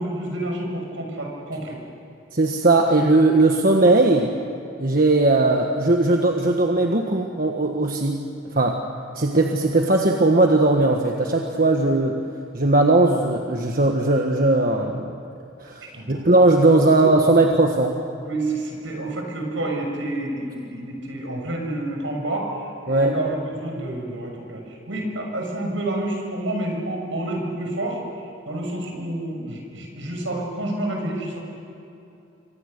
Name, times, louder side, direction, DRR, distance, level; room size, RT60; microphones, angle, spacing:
voice 1, 0.0-1.8 15.9-16.2 18.2-22.5 22.9-28.0 28.5-31.4, right 1 dB, 75° right, 1 dB, 6.3 m, -29 dB
voice 2, 2.3-4.3 4.8-8.2 8.5-8.8 9.1-12.2 12.5-15.2 15.6-17.9 22.9-23.1, right 2 dB, 45° right, 2 dB, 1.4 m, -18 dB
27.5 x 25.0 x 6.7 m, 2.7 s
head